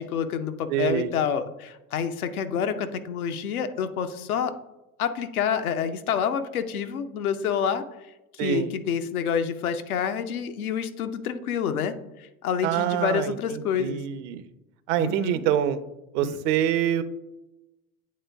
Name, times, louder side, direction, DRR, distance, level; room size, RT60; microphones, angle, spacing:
voice 1, 0.0-4.5 5.0-7.8 8.3-14.0 15.0-15.4 16.2-16.4, left 7 dB, 80° left, 8 dB, 0.7 m, -28 dB
voice 2, 0.7-1.1 8.4-8.7 12.6-14.4 14.9-15.8 16.1-17.0, right 11 dB, 55° right, 12 dB, 0.6 m, -25 dB
8.7 x 3.7 x 3.4 m, 0.96 s
hypercardioid pair, 80°, 43 cm